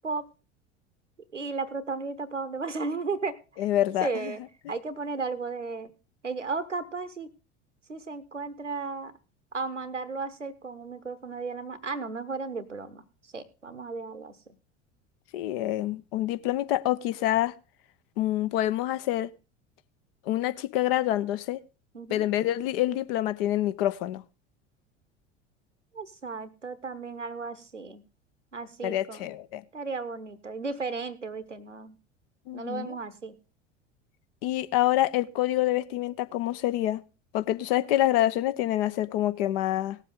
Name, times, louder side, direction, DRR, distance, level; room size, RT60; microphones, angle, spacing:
voice 1, 1.3-3.4 4.0-4.4 4.7-5.9 6.2-7.3 7.9-9.1 9.5-13.0 13.3-14.4 21.9-22.3 25.9-28.0 28.5-29.3 29.7-32.0 32.5-33.4, right 4 dB, 90° right, 0.9 m, -34 dB
voice 2, 3.6-4.3 15.3-17.5 18.2-19.3 20.3-21.6 22.1-24.2 28.8-29.6 32.5-33.0 34.4-37.0 37.3-40.0, left 14 dB, 50° left, 0.8 m, -27 dB
18.0 x 7.4 x 3.7 m
figure-of-eight pair, 75°, 35 cm